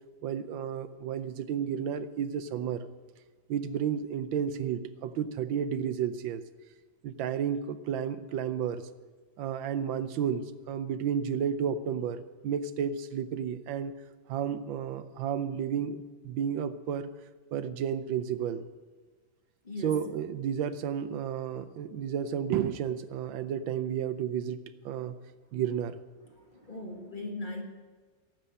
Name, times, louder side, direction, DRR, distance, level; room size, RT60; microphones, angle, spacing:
voice 1, 0.2-2.9 3.5-6.4 7.0-8.8 9.4-13.9 14.3-17.1 17.5-18.6 19.8-25.1 25.5-26.0, right 8 dB, 85° right, 12 dB, 1.4 m, -32 dB
voice 2, 19.6-20.0 26.3-27.6, left 2 dB, 30° left, 2 dB, 1.4 m, -39 dB
12.0 x 7.7 x 9.7 m, 1.4 s
omnidirectional pair, 2.1 m